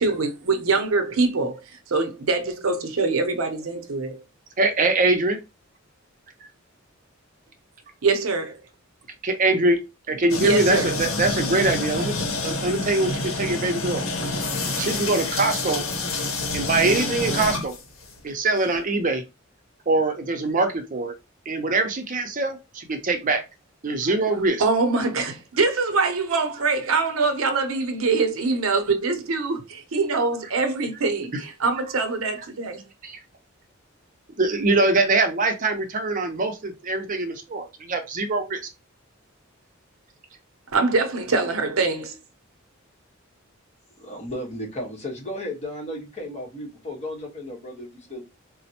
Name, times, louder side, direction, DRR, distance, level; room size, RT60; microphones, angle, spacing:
voice 1, 0.0-1.6 1.9-4.2 8.0-8.6 10.4-10.9 24.6-32.8 40.7-42.2, right 3 dB, 80° right, 0.6 m, -23 dB
voice 2, 4.6-5.4 9.2-9.8 10.1-12.1 12.4-14.0 14.8-15.8 16.5-17.7 18.2-19.2 19.9-21.1 21.5-23.4 23.8-24.6 33.0-33.2 34.4-38.6, right 2 dB, 40° right, 0.5 m, -23 dB
sound 1, 10.3-18.2, left 3 dB, 70° left, 0.8 m, -28 dB
voice 3, 44.0-48.2, left 1 dB, 35° left, 1.1 m, -34 dB
4.1 x 2.0 x 2.8 m
head